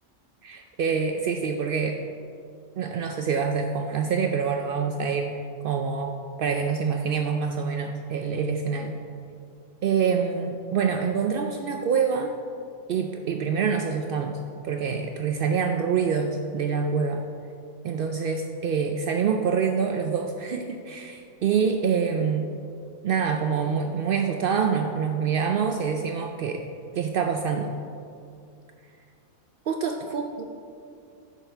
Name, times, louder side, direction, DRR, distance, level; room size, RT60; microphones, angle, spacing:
voice 1, 0.4-2.0 2.8-9.0 9.8-12.4 12.9-17.3 17.8-22.5 23.0-26.6 26.9-27.7 29.7-30.2, right 6 dB, 75° right, 4 dB, 0.5 m, -26 dB
10.0 x 6.1 x 4.5 m, 2.4 s
omnidirectional pair, 1.5 m